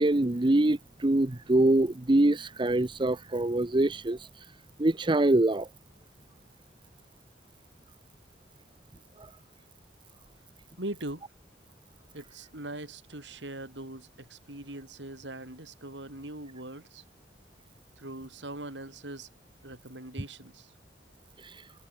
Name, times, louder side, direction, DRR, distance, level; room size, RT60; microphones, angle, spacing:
voice 1, 0.0-4.2 4.8-5.7, right 1 dB, 25° right, 0.7 m, -24 dB
voice 2, 10.8-11.2 12.1-17.0 18.0-19.3 19.6-20.7, right 1 dB, 90° right, 5.9 m, -41 dB
head